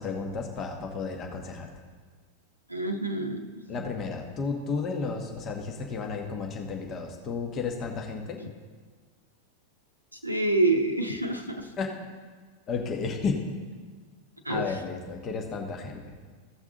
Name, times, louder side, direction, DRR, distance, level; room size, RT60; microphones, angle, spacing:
voice 1, 0.0-1.7 3.7-8.4 11.8-11.9 12.7-13.4 14.5-16.2, left 4 dB, 30° left, 2 dB, 1.2 m, -32 dB
voice 2, 2.7-3.4 10.2-11.7 14.5-14.6, right 2 dB, 85° right, 6 dB, 0.7 m, -26 dB
15.5 x 6.1 x 3.8 m, 1.5 s
figure-of-eight pair, 90°, 0 cm